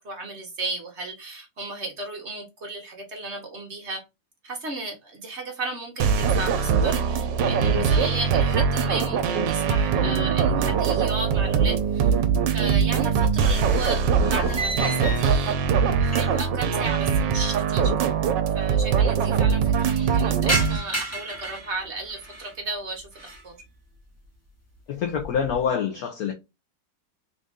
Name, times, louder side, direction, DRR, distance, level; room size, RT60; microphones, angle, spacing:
voice 1, 0.0-4.0 4.4-12.1 12.5-15.6 16.0-17.9 18.5-23.6, right 2 dB, 45° right, 1.0 m, -34 dB
sound 1, 6.0-20.8, right 6 dB, 80° right, 1.3 m, -22 dB
sound 2, 11.3-12.2 12.5-16.6 16.8-16.9 17.8-17.9 18.1-18.2 18.5-19.0 19.4-22.6 23.0-23.5 24.0-24.3 24.8-25.7, right 1 dB, 10° left, 0.8 m, -34 dB
voice 2, 24.9-26.3, left 7 dB, 65° left, 1.0 m, -26 dB
3.9 x 2.4 x 3.5 m
omnidirectional pair, 2.0 m